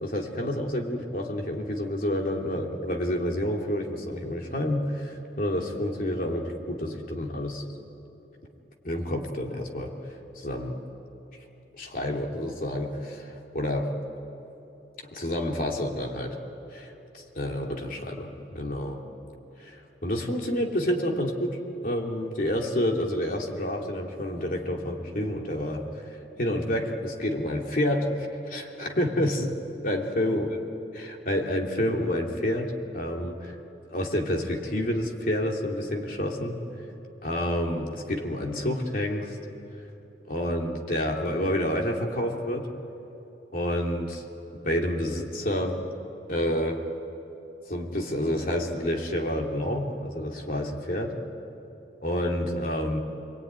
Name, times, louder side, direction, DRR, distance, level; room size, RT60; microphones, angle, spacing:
voice 1, 0.0-7.6 8.8-9.9 10.4-10.7 11.8-13.9 15.1-16.4 16.7-19.0 19.6-21.6 21.8-25.8 26.4-28.1 28.5-29.5 29.8-30.6 31.0-33.6 33.9-36.6 37.2-39.4 40.3-42.7 43.5-44.2 44.6-45.8 46.3-46.8 47.7-51.1 52.0-53.0, left 1 dB, 50° left, 1 dB, 2.8 m, -29 dB
26.5 x 22.5 x 9.6 m, 3.0 s
head